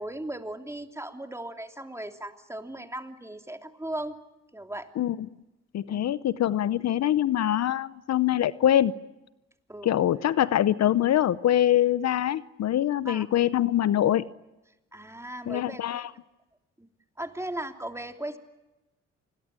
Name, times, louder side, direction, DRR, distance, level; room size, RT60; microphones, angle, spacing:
voice 1, 0.0-4.2 4.5-4.9 5.9-6.0 9.7-10.0 13.0-13.3 14.9-16.0 16.8-16.9 17.2-18.4, right 1 dB, 10° right, 5 dB, 3.2 m, -37 dB
voice 2, 5.7-8.9 9.8-14.2 15.5-16.1, left 11 dB, 60° left, 17 dB, 0.8 m, -24 dB
27.0 x 21.5 x 8.9 m, 0.99 s
supercardioid pair, 55°, 30 cm